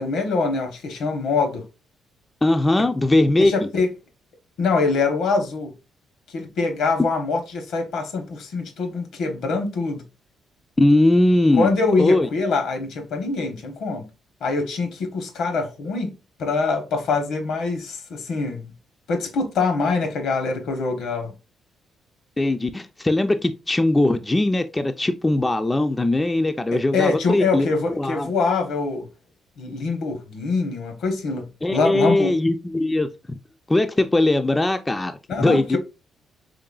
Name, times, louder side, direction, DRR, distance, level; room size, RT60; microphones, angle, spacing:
voice 1, 0.0-1.6 3.4-3.9 4.6-5.7 6.3-10.0 11.6-14.0 14.4-16.1 16.4-18.7 19.1-21.3 26.7-29.1 29.6-32.3 35.3-35.8, left 4 dB, 75° left, 0.9 m, -24 dB
voice 2, 2.4-3.5 10.8-11.7 12.0-12.3 22.4-28.3 31.6-33.4 33.7-35.1 35.4-35.8, left 2 dB, 15° left, 0.3 m, -20 dB
3.8 x 3.2 x 2.3 m
cardioid pair, 90°, 0 cm